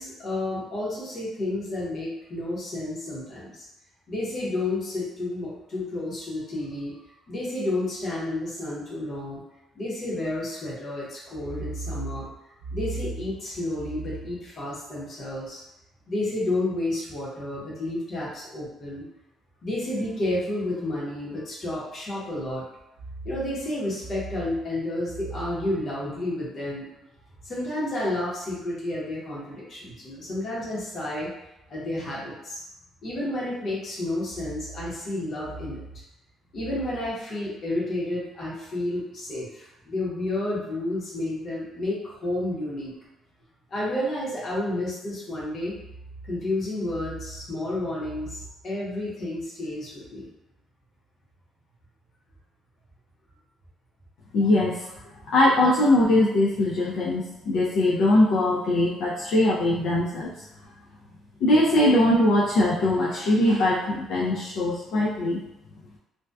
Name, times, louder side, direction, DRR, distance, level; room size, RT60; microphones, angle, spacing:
voice 1, 0.0-3.6 4.1-6.9 7.3-9.4 9.7-12.3 12.7-15.6 16.1-19.0 19.6-22.6 23.2-26.9 27.4-31.3 31.7-32.6 33.0-35.8 36.5-42.9 43.7-45.7 46.3-50.3, left 1 dB, 35° left, -6 dB, 0.8 m, -30 dB
voice 2, 54.3-54.9 55.3-60.3 61.4-65.4, left 1 dB, 60° left, -5 dB, 0.3 m, -21 dB
2.6 x 2.1 x 2.2 m, 0.89 s
cardioid pair, 175°, 0 cm